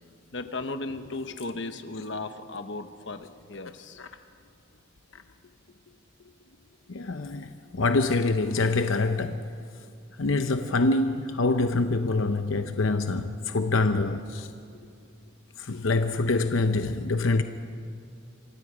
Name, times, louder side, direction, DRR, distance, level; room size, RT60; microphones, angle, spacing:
voice 1, 0.3-4.0 6.2-6.3 14.7-15.0 15.7-15.8 16.1-16.2, left 2 dB, 65° left, 1.1 m, -36 dB
voice 2, 6.9-9.4 10.2-14.5 15.6-17.4, left 3 dB, 85° left, 0.8 m, -25 dB
27.0 x 24.5 x 5.0 m
head